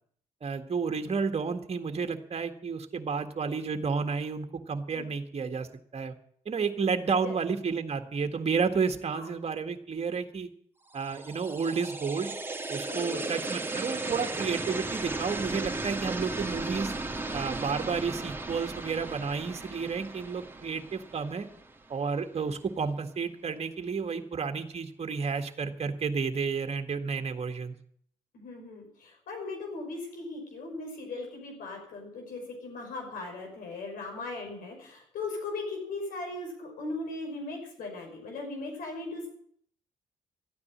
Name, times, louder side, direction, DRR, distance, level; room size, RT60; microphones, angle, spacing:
voice 1, 0.4-6.1 6.5-10.5 10.9-12.3 12.7-16.9 17.3-21.5 21.9-27.7, right 5 dB, 45° right, 6 dB, 1.8 m, -31 dB
sound 1, 10.9-22.0, right 3 dB, 15° right, 2.7 m, -36 dB
voice 2, 12.9-13.5 28.3-39.3, left 3 dB, 75° left, 2 dB, 5.7 m, -38 dB
13.5 x 9.7 x 8.8 m, 0.62 s
hypercardioid pair, 50°, 15 cm